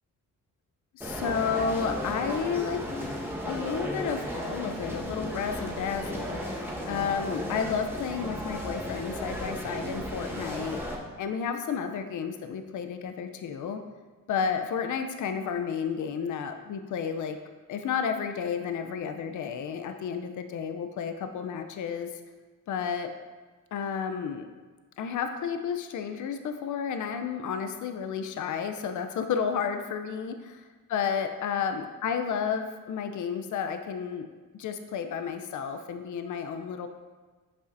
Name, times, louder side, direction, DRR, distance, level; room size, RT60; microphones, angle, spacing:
voice 1, 0.9-10.8 11.2-13.8 14.3-17.4 17.7-22.1 22.7-23.1 23.7-24.5 25.0-30.3 30.9-34.3 34.6-36.9, left 6 dB, 65° left, 7 dB, 0.6 m, -32 dB
sound 1, 1.0-11.0, equal, 5° right, 1.3 m, -35 dB
sound 2, 1.9-3.4 3.8-4.4 5.2-6.9 7.3-8.9 9.1-9.3, left 3 dB, 20° left, 0.6 m, -42 dB
8.2 x 5.2 x 2.6 m, 1.4 s
cardioid pair, 85°, 33 cm